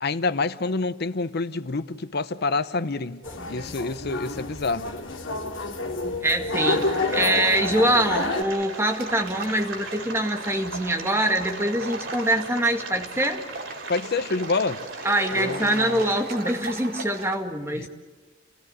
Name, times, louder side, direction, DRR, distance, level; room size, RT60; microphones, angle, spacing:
voice 1, 0.0-3.2 3.5-4.9 13.9-14.8 15.3-16.0 17.7-17.9, left 3 dB, 55° left, 0.8 m, -27 dB
sound 1, 3.2-8.4, left 2 dB, 75° left, 2.9 m, -28 dB
voice 2, 6.2-13.4 15.0-17.9, right 1 dB, 15° right, 2.0 m, -24 dB
sound 2, 6.6-16.1, right 3 dB, 85° right, 4.1 m, -39 dB
sound 3, 8.7-17.3, right 2 dB, 50° right, 3.2 m, -38 dB
29.0 x 16.5 x 9.8 m
head